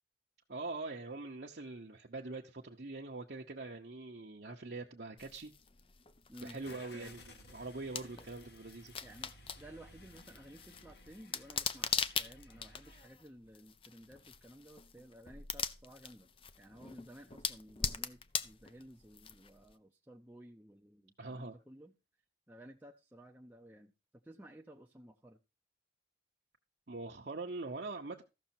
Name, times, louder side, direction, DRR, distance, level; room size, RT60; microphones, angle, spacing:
voice 1, 0.5-5.5 6.4-7.2 7.5-8.9 21.2-21.6 26.9-28.2, right 3 dB, 60° right, 0.9 m, -43 dB
sound 1, 5.2-19.7, left 7 dB, 30° left, 0.5 m, -42 dB
voice 2, 6.3-6.6 6.9-7.1 8.0-8.3 9.0-16.3 16.6-21.9 22.5-23.9 24.2-25.4, right 1 dB, 10° right, 0.6 m, -55 dB
Car / Engine starting, 6.6-13.1, left 1 dB, 65° left, 1.8 m, -57 dB
14.0 x 6.3 x 4.4 m
head